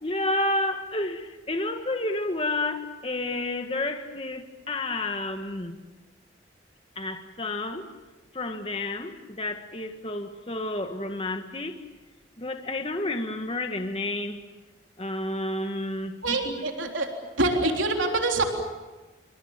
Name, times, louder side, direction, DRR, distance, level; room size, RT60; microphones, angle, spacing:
voice 1, 0.0-5.8 7.0-7.9 8.3-11.8 12.4-14.4 15.0-16.9, left 2 dB, 30° left, 6 dB, 1.6 m, -30 dB
voice 2, 16.2-17.1 17.4-18.4, right 2 dB, 80° right, 2 dB, 3.7 m, -25 dB
28.5 x 25.5 x 7.4 m, 1.2 s
head